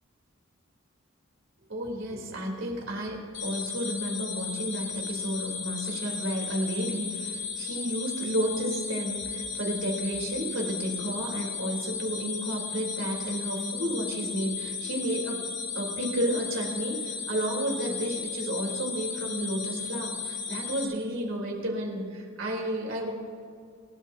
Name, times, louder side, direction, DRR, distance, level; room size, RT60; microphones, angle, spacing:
voice 1, 1.7-15.4 15.7-23.1, right 1 dB, 90° right, -1 dB, 3.8 m, -32 dB
sound 1, 3.3-20.8, left 5 dB, 65° left, 3.9 m, -35 dB
27.5 x 13.5 x 2.9 m, 2.3 s
head